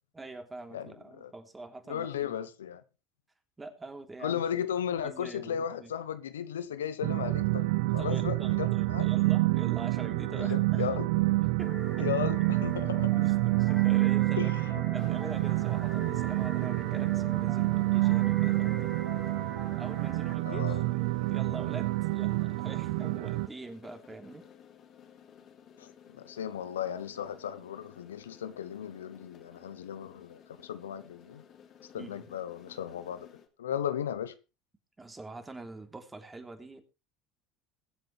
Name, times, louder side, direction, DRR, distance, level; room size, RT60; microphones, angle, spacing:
voice 1, 0.1-2.4 3.6-4.4 5.0-5.9 8.0-10.9 11.6-12.1 13.2-14.5 14.9-18.9 19.4-19.5 19.8-24.5 32.0-32.2 35.0-36.8, right 2 dB, 15° right, 3.3 m, -44 dB
voice 2, 0.7-1.3 1.9-2.8 4.2-9.1 10.4-11.1 12.0-13.2 14.4-14.8 20.5-20.9 25.8-25.9 26.2-31.4 31.9-33.3 33.6-34.4, left 9 dB, 90° left, 0.9 m, -35 dB
sound 1, 7.0-23.5, right 20 dB, 75° right, 0.7 m, -28 dB
sound 2, 11.6-20.3, left 1 dB, 5° left, 0.9 m, -44 dB
sound 3, 15.0-33.5, left 8 dB, 50° left, 2.9 m, -55 dB
22.0 x 7.8 x 3.3 m
hypercardioid pair, 75°, 0 cm